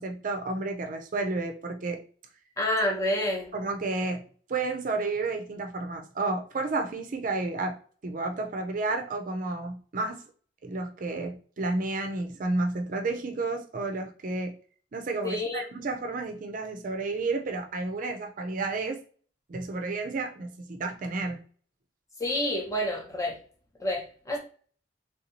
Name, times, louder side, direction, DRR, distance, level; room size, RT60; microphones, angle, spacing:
voice 1, 0.0-2.0 3.5-4.2 4.5-7.8 8.0-10.2 10.6-14.5 14.9-19.0 19.5-21.4, right 3 dB, 45° right, 0.5 m, -31 dB
voice 2, 2.6-3.5 15.2-15.6 22.2-23.4 23.8-24.4, left 1 dB, 20° left, 0.8 m, -28 dB
3.4 x 2.6 x 2.8 m
head